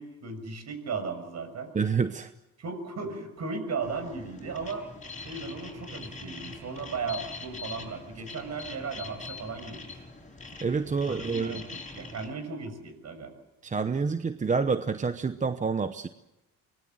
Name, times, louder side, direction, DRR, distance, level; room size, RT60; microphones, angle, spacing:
voice 1, 0.0-1.7 2.6-4.9 5.2-10.0 10.8-13.3, right 4 dB, 45° right, 8 dB, 6.3 m, -36 dB
voice 2, 1.7-2.3 10.6-11.6 13.6-16.1, right 5 dB, 20° right, 10 dB, 0.9 m, -28 dB
sound 1, 3.8-12.3, left 3 dB, 20° left, 6.4 m, -43 dB
24.5 x 20.5 x 7.7 m, 0.95 s
cardioid pair, 110°, 35 cm